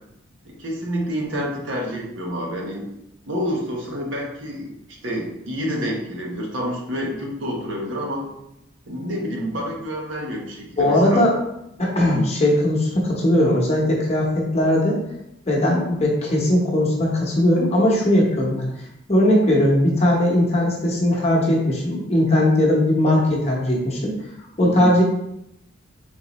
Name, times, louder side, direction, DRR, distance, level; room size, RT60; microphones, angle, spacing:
voice 1, 0.4-2.9 3.3-4.7 5.0-8.3 8.8-11.2 12.1-12.3 24.6-24.9, equal, 70° right, -1 dB, 1.0 m, -28 dB
voice 2, 10.8-11.3 11.8-15.0 15.5-18.7 19.1-24.1 24.6-25.0, left 1 dB, 30° left, -3 dB, 0.9 m, -19 dB
3.9 x 3.8 x 3.0 m, 0.83 s
head